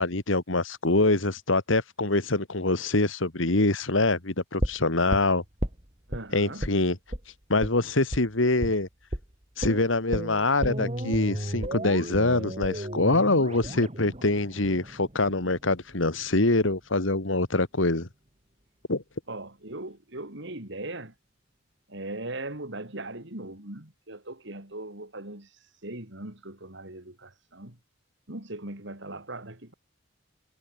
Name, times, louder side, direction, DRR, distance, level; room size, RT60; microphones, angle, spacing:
voice 1, 0.0-5.4 6.3-7.0 7.5-8.9 9.6-18.1 18.9-19.0, left 2 dB, 75° left, 2.3 m, -24 dB
sound 1, 4.6-6.2 6.6-6.8 7.1-7.3 7.6-7.8 8.1-8.3 8.6-8.8 9.1-9.3 9.6-15.6 15.9-16.0, right 1 dB, 35° right, 3.3 m, -33 dB
voice 2, 6.1-6.7 19.3-21.1 21.9-25.5 25.8-27.8 28.3-29.7, right 2 dB, 65° right, 4.5 m, -39 dB
head